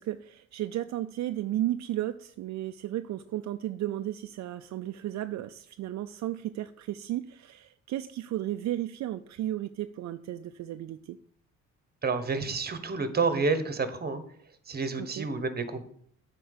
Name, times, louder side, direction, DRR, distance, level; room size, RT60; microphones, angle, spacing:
voice 1, 0.0-11.2 15.0-15.3, right 13 dB, 65° right, 9 dB, 0.5 m, -34 dB
voice 2, 12.0-14.2 14.7-15.8, right 4 dB, 30° right, 11 dB, 1.3 m, -29 dB
8.7 x 4.6 x 6.7 m, 0.63 s
cardioid pair, 90°, 30 cm